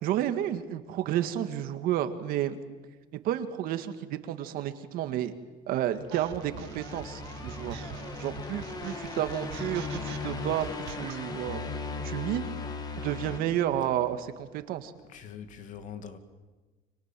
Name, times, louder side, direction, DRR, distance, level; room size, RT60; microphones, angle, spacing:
voice 1, 0.0-2.6 3.2-5.3 5.7-7.8 8.2-11.6 12.0-12.5 13.0-14.9, right 11 dB, 60° right, 9 dB, 1.9 m, -31 dB
sound 1, 6.0-14.3, left 4 dB, 25° left, 2.2 m, -38 dB
sound 2, 6.1-11.2, right 13 dB, 85° right, 1.8 m, -45 dB
voice 2, 15.1-16.2, left 7 dB, 45° left, 8 dB, 2.4 m, -43 dB
29.5 x 26.0 x 7.6 m, 1.3 s
cardioid pair, 155°, 17 cm